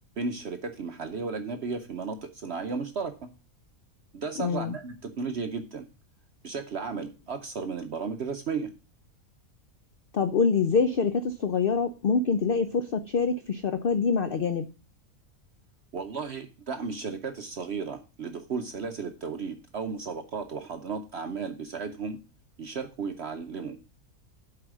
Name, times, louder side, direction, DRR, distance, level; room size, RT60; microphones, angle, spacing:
voice 1, 0.2-3.3 4.1-5.9 6.4-8.7 15.9-22.2 22.6-23.8, right 5 dB, 55° right, 6 dB, 0.9 m, -34 dB
voice 2, 4.4-4.7 10.1-14.7, left 5 dB, 55° left, 9 dB, 0.6 m, -25 dB
8.2 x 4.9 x 6.1 m, 0.33 s
omnidirectional pair, 1.5 m